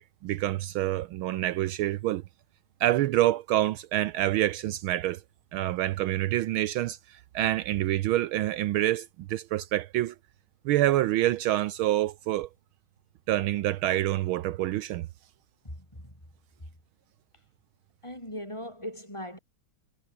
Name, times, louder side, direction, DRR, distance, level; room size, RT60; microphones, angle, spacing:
voice 1, 0.0-2.2 2.8-5.2 5.5-10.1 10.6-12.5 13.3-15.1, right 14 dB, 75° right, 1.5 m, -27 dB
voice 2, 15.6-16.2 18.0-19.4, equal, 10° left, 7.5 m, -39 dB
omnidirectional pair, 2.4 m